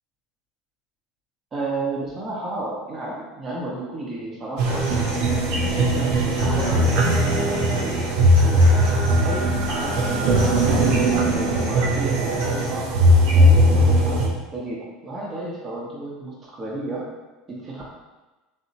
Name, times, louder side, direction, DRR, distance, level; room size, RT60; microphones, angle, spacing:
voice 1, 1.5-4.8 5.3-7.2 7.5-8.8 9.2-12.9 13.3-17.1 17.5-17.8, right 2 dB, 30° right, -4 dB, 0.7 m, -32 dB
sound 1, 4.6-14.3, equal, 60° right, 0.4 m, -19 dB
Human voice / Acoustic guitar, 4.7-12.6, right 1 dB, 85° right, 0.9 m, -31 dB
2.8 x 2.1 x 2.7 m, 1.1 s
figure-of-eight pair, 75°, 0 cm